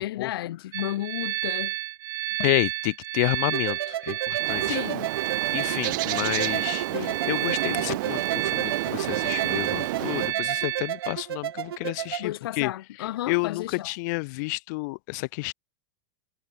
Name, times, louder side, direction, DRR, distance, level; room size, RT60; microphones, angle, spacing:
voice 1, 0.0-1.7 4.6-5.1 6.9-7.2 10.3-10.5 12.2-13.9, left 14 dB, 75° left, 1.4 m, -33 dB
sound 1, 0.7-11.1, right 16 dB, 25° right, 0.4 m, -31 dB
voice 2, 2.4-4.8 5.2-12.7 13.3-15.5, left 27 dB, 50° left, 1.6 m, -30 dB
sound 2, 3.5-12.3, right 11 dB, 90° right, 2.8 m, -33 dB
Bird, 4.4-10.3, right 20 dB, 55° right, 0.7 m, -31 dB
supercardioid pair, 155°, 12 cm